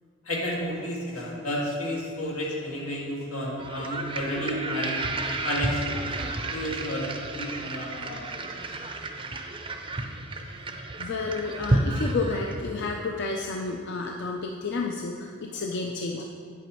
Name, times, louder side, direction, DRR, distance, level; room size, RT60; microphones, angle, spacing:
voice 1, 0.3-5.0 5.4-8.2, equal, 90° left, -4 dB, 2.0 m, -31 dB
sound 1, 3.6-12.9, right 2 dB, 25° right, 0.5 m, -31 dB
voice 2, 11.0-16.2, left 3 dB, 55° left, 1 dB, 0.5 m, -31 dB
8.2 x 7.9 x 3.1 m, 2.2 s
head